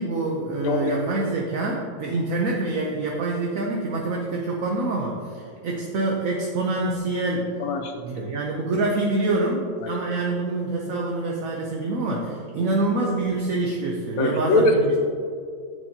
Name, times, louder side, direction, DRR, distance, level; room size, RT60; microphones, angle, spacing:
voice 1, 0.0-7.5 8.0-15.0, right 2 dB, 65° right, -1 dB, 1.1 m, -26 dB
voice 2, 7.6-7.9 9.8-9.9 14.2-15.0, left 2 dB, 65° left, 5 dB, 1.2 m, -21 dB
10.5 x 6.4 x 2.8 m, 2.3 s
omnidirectional pair, 1.6 m